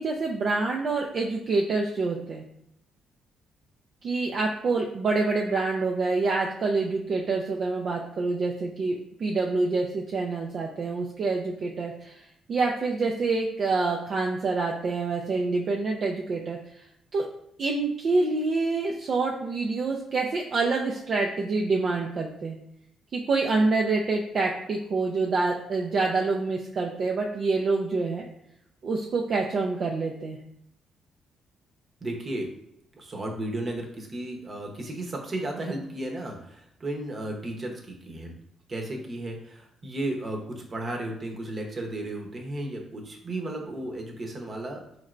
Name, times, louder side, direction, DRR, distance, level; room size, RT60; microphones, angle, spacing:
voice 1, 0.0-2.4 4.0-12.2 12.5-16.6 17.1-17.3 17.6-22.6 23.1-28.2 28.8-30.4, right 3 dB, 55° right, 0 dB, 0.4 m, -26 dB
voice 2, 32.0-32.5 33.0-38.4 38.7-45.0, right 1 dB, 35° right, 1 dB, 0.9 m, -34 dB
4.1 x 3.2 x 2.5 m, 0.77 s
cardioid pair, 90°, 0 cm